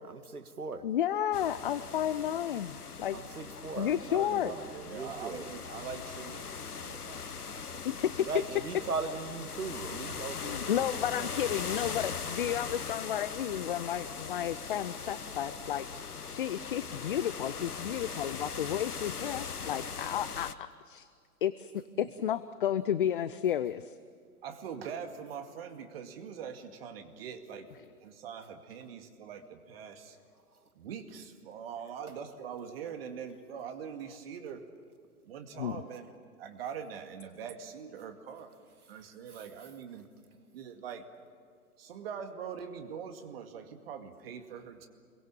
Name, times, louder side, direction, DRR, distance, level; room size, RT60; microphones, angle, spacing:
voice 1, 0.0-0.8 3.1-5.4 8.2-10.8 11.2-11.3, right 4 dB, 75° right, 10 dB, 2.0 m, -38 dB
voice 2, 0.8-3.2 3.8-4.5 7.8-8.3 10.4-21.1 21.4-24.0 35.6-35.8, left 10 dB, 35° left, 15 dB, 0.6 m, -32 dB
sound 1, 1.3-20.5, left 5 dB, 80° left, 1.0 m, -40 dB
voice 3, 4.4-8.3 8.6-8.9 9.7-9.9 21.9-22.1 24.4-27.7 28.0-30.2 30.7-34.7 35.2-38.5 38.9-40.1 40.5-41.1 41.8-44.9, right 7 dB, 40° right, 6 dB, 2.2 m, -43 dB
28.0 x 23.0 x 7.3 m, 2.2 s
figure-of-eight pair, 120°, 45 cm